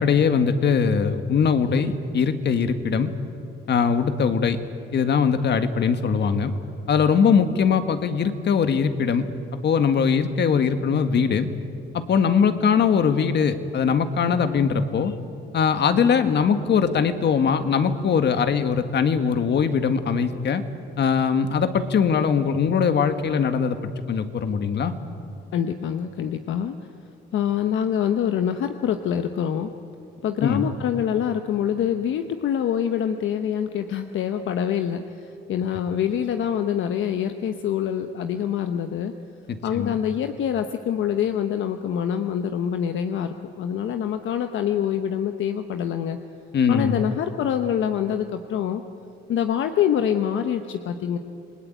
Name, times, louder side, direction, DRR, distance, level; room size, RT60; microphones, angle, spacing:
voice 1, 0.0-3.1 3.7-4.6 4.9-6.5 6.9-9.3 9.6-11.5 11.9-15.2 15.5-20.6 21.0-23.8 24.1-24.9 30.4-30.7 39.7-40.0 46.5-47.0, left 6 dB, 60° left, 9 dB, 1.8 m, -21 dB
voice 2, 25.5-26.7 27.3-29.7 30.2-35.0 35.5-39.1 39.6-46.2 46.7-48.8 49.3-51.2, left 9 dB, 75° left, 7 dB, 1.1 m, -25 dB
28.0 x 20.0 x 9.2 m, 2.6 s
cardioid pair, 90°, 20 cm